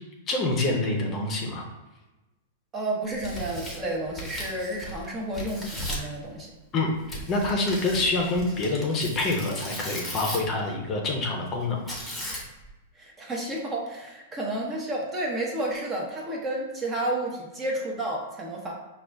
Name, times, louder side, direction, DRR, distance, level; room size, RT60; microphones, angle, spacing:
voice 1, 0.3-1.6 6.7-6.9 7.3-12.0, left 2 dB, 30° left, 1 dB, 0.7 m, -26 dB
voice 2, 2.7-6.5 13.0-18.7, right 1 dB, 20° right, -1 dB, 0.8 m, -31 dB
Tearing, 3.0-5.1 5.3-6.1 7.1-10.6 11.9-12.7, equal, 5° left, 1.0 m, -37 dB
5.0 x 2.4 x 3.4 m, 1.1 s
supercardioid pair, 145°, 0 cm